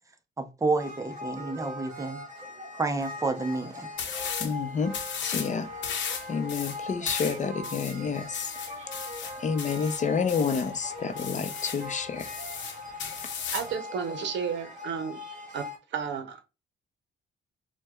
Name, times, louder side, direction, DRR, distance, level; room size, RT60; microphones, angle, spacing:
voice 1, 0.4-2.2 2.8-3.9, right 3 dB, 15° right, 0.6 m, -29 dB
sound 1, 0.8-15.8, left 2 dB, 35° right, 1.5 m, -41 dB
sound 2, 4.0-4.5 4.9-5.5 5.8-10.7 11.2-11.9 12.2-13.7, left 7 dB, 65° left, 0.8 m, -35 dB
voice 2, 4.4-4.9 5.3-5.7 6.3-8.5 9.4-12.3, left 5 dB, 40° left, 0.5 m, -29 dB
voice 3, 13.5-15.2 15.5-16.6, right 6 dB, 65° right, 0.7 m, -33 dB
4.4 x 2.2 x 2.2 m
cardioid pair, 90°, 20 cm